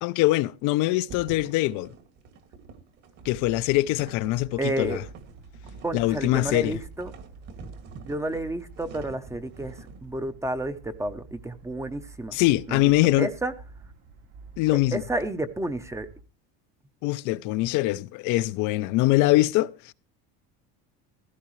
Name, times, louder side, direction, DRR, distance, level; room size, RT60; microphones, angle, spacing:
voice 1, 0.0-1.9 3.2-5.0 5.9-6.8 12.3-13.3 14.6-15.0 17.0-19.9, left 18 dB, 65° left, 0.6 m, -23 dB
sound 1, 1.1-10.0, right 4 dB, 55° right, 2.2 m, -46 dB
sound 2, 3.2-16.2, right 4 dB, 70° right, 2.4 m, -48 dB
voice 2, 4.6-5.0 5.8-7.1 8.1-9.7 10.0-12.4 12.7-12.8 13.2-13.5 14.9-16.1, right 2 dB, 10° right, 0.6 m, -30 dB
16.0 x 13.0 x 3.1 m
cardioid pair, 145°, 33 cm